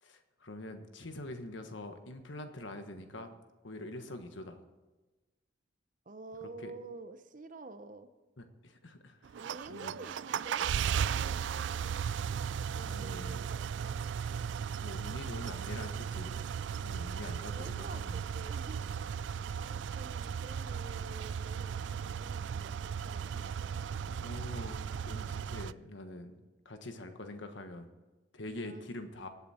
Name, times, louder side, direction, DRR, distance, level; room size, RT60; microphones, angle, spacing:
voice 1, 0.0-3.3 3.6-4.6 6.6-6.7 8.4-9.4 9.7-9.9 12.9-13.3 14.8-18.2 24.0-27.9 28.3-29.3, left 1 dB, 75° left, 7 dB, 1.4 m, -45 dB
voice 2, 6.1-8.1 9.4-11.9 12.7-14.1 17.5-18.9 19.2-23.4 28.6-28.9, right 3 dB, 40° right, 11 dB, 0.8 m, -49 dB
sound 1, 9.3-25.7, right 7 dB, 70° right, 0.3 m, -36 dB
24.0 x 8.3 x 4.3 m, 1.2 s
head